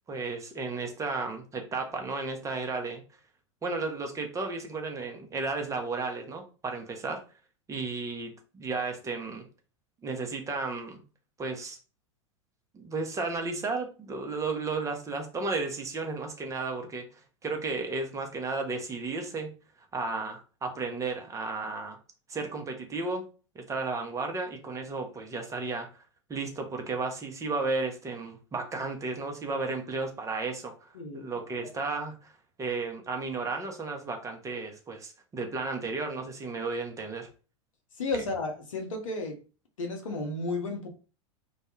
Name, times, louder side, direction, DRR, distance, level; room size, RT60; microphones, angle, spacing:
voice 1, 0.1-3.0 3.6-7.2 7.7-9.5 10.0-11.0 11.4-11.8 12.7-19.5 19.9-22.0 22.3-23.2 23.5-25.9 26.3-37.3, right 3 dB, 20° right, 4 dB, 0.5 m, -33 dB
voice 2, 30.9-31.3 38.0-39.4 39.8-40.9, left 3 dB, 75° left, 3 dB, 0.7 m, -33 dB
2.2 x 2.1 x 2.9 m, 0.35 s
figure-of-eight pair, 90°, 17 cm